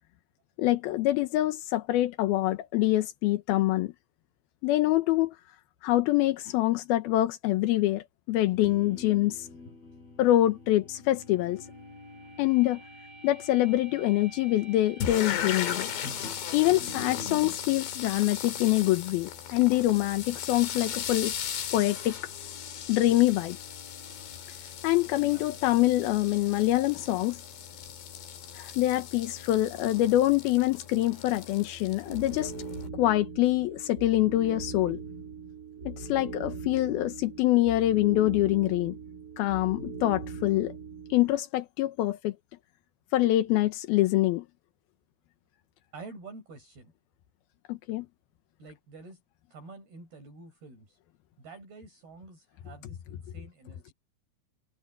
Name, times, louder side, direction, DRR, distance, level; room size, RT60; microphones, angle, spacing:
voice 1, 0.6-3.9 4.6-5.3 5.8-9.5 10.2-11.6 12.4-12.8 13.2-15.9 16.5-21.3 21.7-22.2 22.9-23.6 24.8-27.4 28.6-32.5 32.9-35.0 35.9-39.0 39.4-40.7 41.1-42.3 43.1-44.5 47.7-48.1, left 15 dB, 80° left, 2.2 m, -25 dB
sound 1, 8.5-17.6, left 2 dB, 50° left, 9.2 m, -46 dB
sound 2, 15.0-32.9, left 9 dB, 65° left, 4.8 m, -38 dB
voice 2, 16.7-17.2 25.2-25.4 45.9-46.9 48.6-49.2 49.5-51.0 51.4-53.9, right 3 dB, 50° right, 9.0 m, -48 dB
sound 3, 32.0-41.3, right 5 dB, 20° right, 3.0 m, -40 dB
omnidirectional pair, 5.7 m